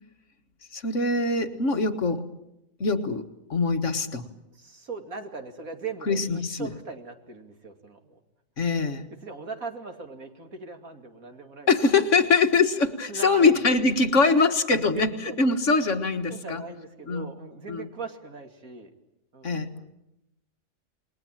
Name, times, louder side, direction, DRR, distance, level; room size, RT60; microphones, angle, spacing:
voice 1, 0.7-2.2 2.8-3.2 3.5-4.3 6.1-6.7 8.6-9.1 11.7-15.1 15.4-16.6 17.1-17.3 17.7-17.9 19.4-19.7, left 4 dB, 60° left, 7 dB, 1.9 m, -23 dB
voice 2, 4.5-8.2 9.1-11.7 13.1-13.6 14.9-15.6 16.3-18.9 19.3-19.9, right 4 dB, 75° right, 5 dB, 3.0 m, -39 dB
28.5 x 21.0 x 9.0 m, 0.89 s
omnidirectional pair, 1.5 m